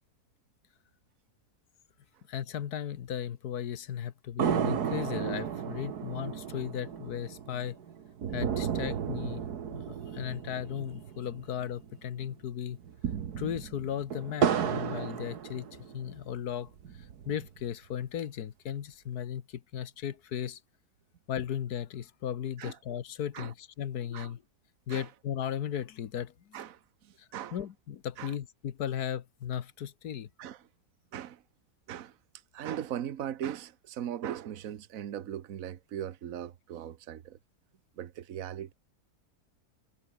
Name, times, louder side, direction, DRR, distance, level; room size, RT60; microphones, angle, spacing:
voice 1, 2.3-7.8 8.3-9.4 9.7-9.8 10.1-12.8 13.4-16.7 17.3-20.6 21.3-24.4 24.9-26.6 27.2-30.3, left 9 dB, 80° left, 1.6 m, -36 dB
sound 1, 4.4-12.0 12.2-12.3 12.8-16.2 16.7-17.7, right 8 dB, 85° right, 1.9 m, -33 dB
voice 2, 26.5-27.6 28.2-28.4 30.4-30.7 31.1-31.4 31.9-32.2 32.5-37.4 38.0-38.7, right 10 dB, 65° right, 1.4 m, -39 dB
omnidirectional pair, 1.6 m